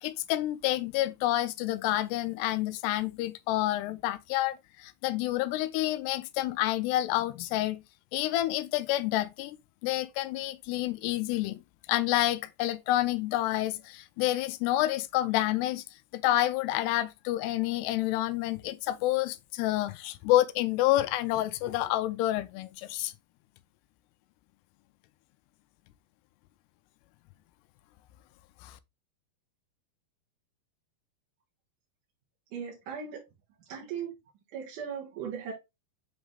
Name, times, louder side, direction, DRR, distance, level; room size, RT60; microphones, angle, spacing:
voice 1, 0.0-7.8 8.1-9.6 9.8-11.6 11.9-15.8 16.1-23.1 28.6-28.8, left 15 dB, 85° left, 2.6 m, -28 dB
voice 2, 32.5-33.2 33.7-34.1 34.5-35.5, right 7 dB, 60° right, 2.6 m, -37 dB
7.9 x 3.8 x 3.2 m
omnidirectional pair, 4.9 m